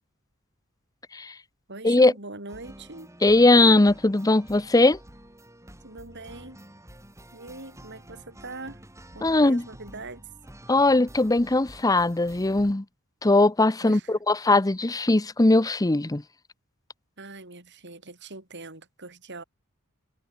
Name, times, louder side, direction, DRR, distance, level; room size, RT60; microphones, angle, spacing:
voice 1, 1.7-3.1 5.8-6.6 7.3-8.8 9.1-10.3 13.8-14.1 17.2-19.4, right 2 dB, 55° right, 6.8 m, -42 dB
sound 1, 2.5-12.7, right 1 dB, 15° right, 7.2 m, -49 dB
voice 2, 3.2-5.0 9.2-9.6 10.7-12.8 13.2-16.2, left 2 dB, 15° left, 0.7 m, -20 dB
head